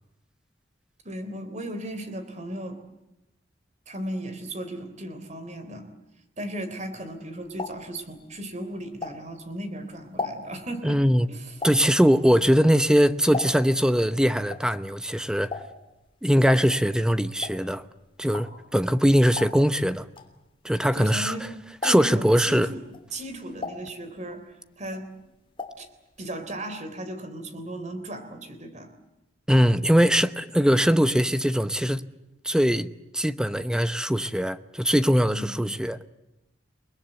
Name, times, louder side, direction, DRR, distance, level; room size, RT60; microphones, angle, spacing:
voice 1, 1.0-2.8 3.9-5.9 6.4-11.0 11.3-11.5 20.9-21.5 21.8-22.8 23.1-25.1 25.8-25.9 26.2-28.9 35.3-35.6, right 1 dB, 40° right, 3.5 m, -36 dB
sound 1, 7.0-9.6 9.9-13.9 14.1-21.4 21.7-22.3 22.8-24.5 24.8-25.9 26.1-26.2 26.5-26.6, left 3 dB, 30° left, 2.9 m, -38 dB
voice 2, 10.8-11.3 11.6-15.5 16.2-17.8 18.2-20.1 20.6-21.4 21.8-22.7 29.5-32.0 32.4-32.9 33.1-36.0, equal, 5° right, 0.8 m, -21 dB
29.5 x 21.0 x 8.0 m
head